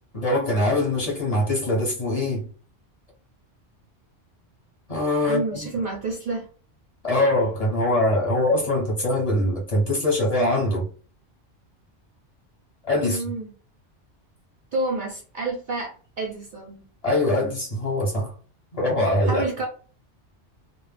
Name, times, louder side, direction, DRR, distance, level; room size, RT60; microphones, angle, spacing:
voice 1, 0.1-2.5 4.9-5.6 7.0-10.9 12.8-13.2 17.0-18.3 18.7-19.4, left 1 dB, 35° left, 0.8 m, -23 dB
voice 2, 5.2-6.5 13.0-13.5 14.7-16.9 19.3-19.7, right 3 dB, 60° right, 0.5 m, -29 dB
2.2 x 2.0 x 3.2 m
omnidirectional pair, 1.2 m